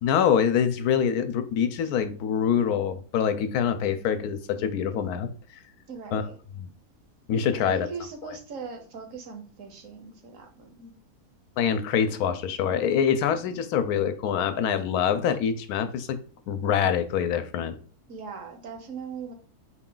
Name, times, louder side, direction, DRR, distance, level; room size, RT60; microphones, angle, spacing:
voice 1, 0.0-5.3 6.1-6.3 6.6-6.7 7.3-7.9 8.2-8.4 11.6-16.2 16.5-17.8, left 8 dB, 75° left, 10 dB, 1.1 m, -25 dB
voice 2, 5.9-6.4 7.5-10.9 18.1-19.3, right 5 dB, 60° right, 5 dB, 1.2 m, -40 dB
4.3 x 2.3 x 3.8 m, 0.40 s
omnidirectional pair, 1.6 m